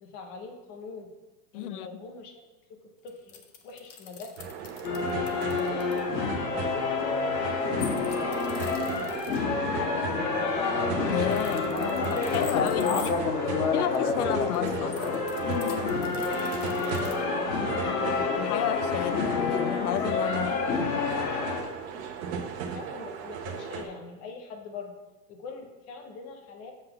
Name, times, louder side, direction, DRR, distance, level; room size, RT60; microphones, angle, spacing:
voice 1, 0.0-1.1 1.5-2.4 2.7-4.3 5.2-6.1 6.3-7.0 7.7-10.2 12.8-13.2 13.5-13.8 16.3-17.1 22.7-24.9 25.3-26.7, left 4 dB, 15° left, 0.5 m, -43 dB
voice 2, 1.5-1.9 11.1-11.7 12.1-13.3 13.7-15.3 18.4-20.9, left 12 dB, 65° left, 0.6 m, -32 dB
sound 1, 3.1-6.0 7.8-9.4 11.1-13.1 14.0-17.1, left 7 dB, 50° left, 1.0 m, -45 dB
sound 2, 4.4-23.8, right 6 dB, 45° right, 1.0 m, -37 dB
sound 3, 4.8-21.6, left 4 dB, 90° left, 1.6 m, -28 dB
7.6 x 4.0 x 6.6 m
hypercardioid pair, 150°, 48 cm